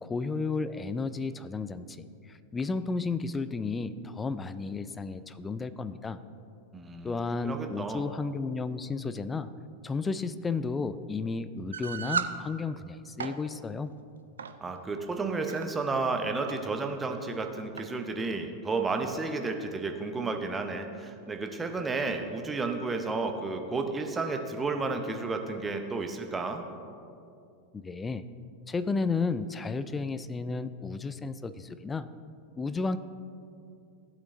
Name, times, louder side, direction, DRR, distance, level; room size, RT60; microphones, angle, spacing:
voice 1, 0.0-6.2 7.0-9.5 9.8-13.9 27.7-28.2 28.7-32.1 32.6-33.0, left 4 dB, 15° left, 13 dB, 0.4 m, -33 dB
voice 2, 6.7-7.2 7.4-8.0 14.6-26.6, right 3 dB, 15° right, 5 dB, 0.8 m, -32 dB
sound 1, 11.7-12.4 13.0-13.4 14.4-14.6 15.3-15.6 16.5-16.6 16.9-17.0 17.8-17.9, right 6 dB, 70° right, 0.4 m, -33 dB
15.0 x 8.2 x 2.6 m, 2.5 s
figure-of-eight pair, 90°, 0 cm